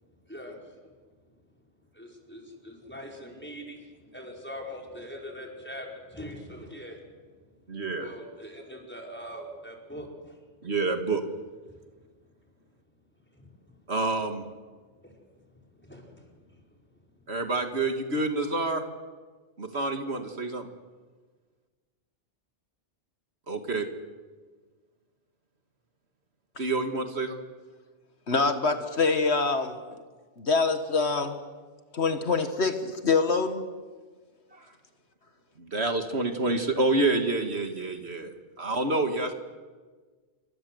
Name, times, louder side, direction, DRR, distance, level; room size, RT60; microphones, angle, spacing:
voice 1, 0.3-0.7 1.9-7.1 8.0-10.3 13.3-13.8 15.0-15.2 15.5-16.6, equal, 10° left, 0 dB, 5.3 m, -43 dB
voice 2, 7.7-8.1 10.6-11.2 13.9-14.4 17.3-18.8 19.6-20.7 23.5-23.9 26.6-27.4 34.5-34.7 35.6-39.3, right 2 dB, 65° right, 6 dB, 2.3 m, -28 dB
voice 3, 28.3-29.7 30.4-31.4 31.9-33.6, left 4 dB, 70° left, 8 dB, 1.9 m, -25 dB
28.5 x 24.0 x 8.0 m, 1.4 s
omnidirectional pair, 1.2 m